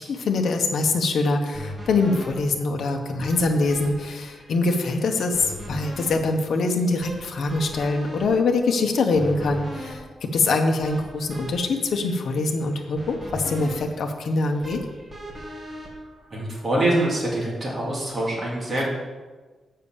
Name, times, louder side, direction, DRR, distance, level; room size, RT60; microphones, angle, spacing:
voice 1, 0.0-14.8, left 3 dB, 60° left, 3 dB, 1.0 m, -24 dB
sound 1, 1.5-16.8, equal, 15° right, 1.8 m, -40 dB
voice 2, 16.3-18.9, right 1 dB, 30° right, -4 dB, 2.5 m, -24 dB
6.9 x 5.6 x 7.2 m, 1.3 s
wide cardioid pair, 165°, 0 cm